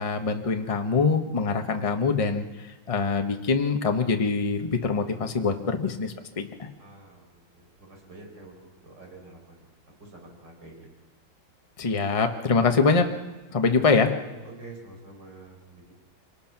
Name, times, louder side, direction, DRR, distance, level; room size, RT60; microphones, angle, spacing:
voice 1, 0.0-6.7 11.8-13.1 13.5-14.1, left 4 dB, 20° left, 5 dB, 0.9 m, -24 dB
voice 2, 6.8-9.7 10.0-10.9 14.4-15.9, right 2 dB, 55° right, 1 dB, 5.5 m, -47 dB
25.0 x 19.0 x 6.0 m, 1.2 s
omnidirectional pair, 2.2 m